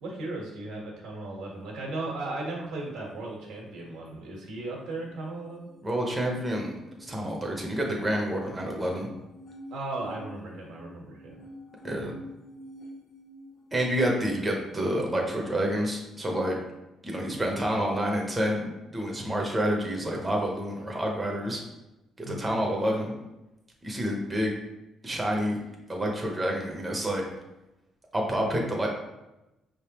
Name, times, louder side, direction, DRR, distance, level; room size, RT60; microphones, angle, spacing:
voice 1, 0.0-5.7 9.7-11.5 22.2-22.5, right 2 dB, 85° right, -1 dB, 1.3 m, -36 dB
sound 1, 4.7-14.4, equal, 60° left, 1.4 m, -48 dB
voice 2, 5.8-6.8 7.1-9.1 11.8-12.1 13.7-16.6 17.0-21.6 22.2-23.1 23.8-24.5 25.0-25.6 25.9-27.2 28.1-28.9, equal, 15° right, 0 dB, 0.7 m, -28 dB
5.4 x 3.4 x 2.9 m, 0.97 s
cardioid pair, 150°, 0 cm